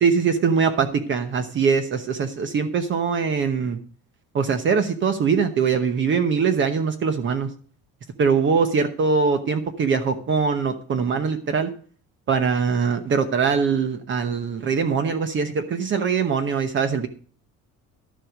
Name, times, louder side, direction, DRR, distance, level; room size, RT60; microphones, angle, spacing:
voice 1, 0.0-3.8 4.3-7.5 8.2-11.7 12.3-17.1, right 5 dB, 35° right, 9 dB, 1.0 m, -22 dB
12.5 x 7.5 x 5.0 m, 0.43 s
cardioid pair, 175°, 33 cm